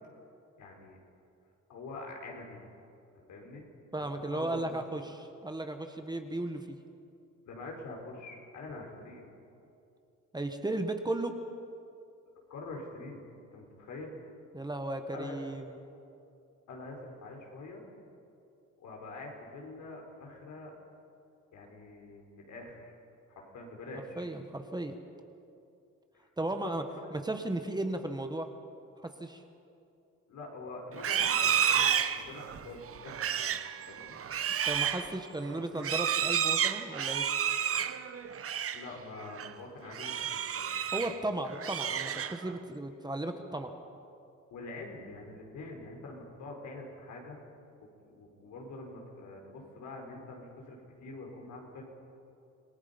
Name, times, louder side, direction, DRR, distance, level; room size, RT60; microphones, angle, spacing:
voice 1, 0.6-1.0 1.7-2.6 3.3-3.6 4.3-4.7 7.5-9.2 12.5-13.2 13.5-14.2 15.1-15.4 16.7-17.8 18.8-20.7 21.5-23.0 23.3-24.2 26.1-26.3 26.6-27.3 30.3-33.6 33.9-34.2 38.7-40.7 41.0-41.1 44.5-47.4 48.1-51.8, left 2 dB, 75° left, 0 dB, 4.7 m, -45 dB
voice 2, 3.9-6.8 10.3-11.4 14.5-15.7 24.2-25.0 26.4-26.8 27.1-28.5 29.0-29.4 34.6-37.2 40.9-43.7, right 2 dB, 15° right, 6 dB, 1.5 m, -35 dB
Livestock farm animals working animals, 30.9-38.9 39.2-39.5 39.9-41.2 41.5-42.6, right 8 dB, 50° right, 0.9 m, -31 dB
27.0 x 18.5 x 5.4 m, 2.6 s
cardioid pair, 90°, 30 cm